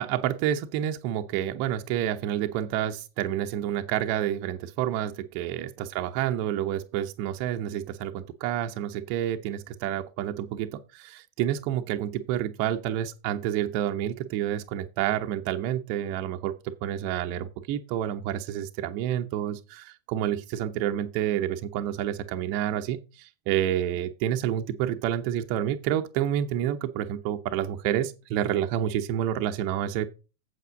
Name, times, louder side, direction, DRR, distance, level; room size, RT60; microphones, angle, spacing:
voice 1, 0.0-30.1, right 11 dB, 45° right, 0.8 m, -29 dB
8.3 x 7.5 x 5.0 m
figure-of-eight pair, 90°, 0 cm